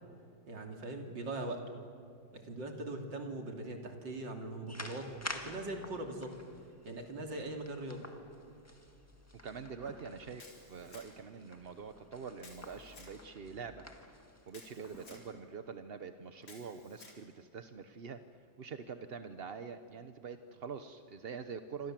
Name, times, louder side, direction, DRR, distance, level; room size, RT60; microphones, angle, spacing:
voice 1, 0.5-1.6 2.3-6.3 6.9-8.0, right 2 dB, 70° right, 3 dB, 3.5 m, -41 dB
sound 1, 4.7-15.3, left 1 dB, 10° left, 1.7 m, -50 dB
voice 2, 9.4-13.8 14.5-18.2 18.6-21.9, right 6 dB, 50° right, 9 dB, 0.7 m, -45 dB
Camera, 10.4-11.3 12.4-13.2 14.5-15.3 16.4-17.2, left 3 dB, 80° left, 4.7 m, -56 dB
28.0 x 26.0 x 7.6 m, 2.5 s
omnidirectional pair, 2.1 m